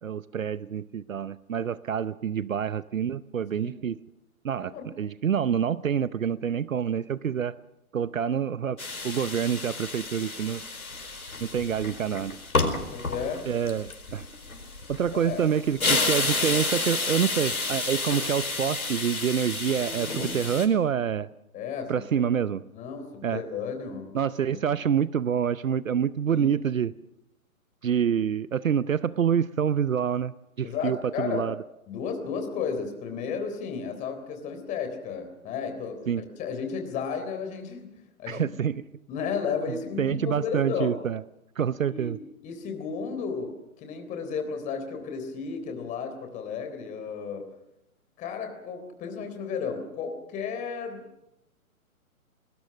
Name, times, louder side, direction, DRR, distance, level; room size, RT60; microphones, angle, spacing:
voice 1, 0.0-4.0 4.4-7.5 7.9-8.8 9.0-10.6 11.4-12.4 13.4-14.2 14.9-21.3 21.9-22.6 23.2-23.4 24.1-26.9 27.8-31.6 36.1-36.2 38.3-38.8 40.0-41.2 41.6-42.2, right 8 dB, 65° right, 17 dB, 0.8 m, -27 dB
voice 2, 4.6-4.9 12.9-13.5 15.1-15.5 21.5-22.3 22.7-24.1 24.5-24.6 26.3-26.5 30.6-31.4 31.9-38.5 39.1-40.9 41.9-42.1 42.4-43.5 43.8-47.4 48.2-51.0, left 6 dB, 15° left, 6 dB, 3.6 m, -33 dB
sound 1, 8.8-20.7, left 3 dB, 80° left, 4.5 m, -30 dB
26.5 x 20.5 x 6.4 m, 0.88 s
figure-of-eight pair, 130°, 43 cm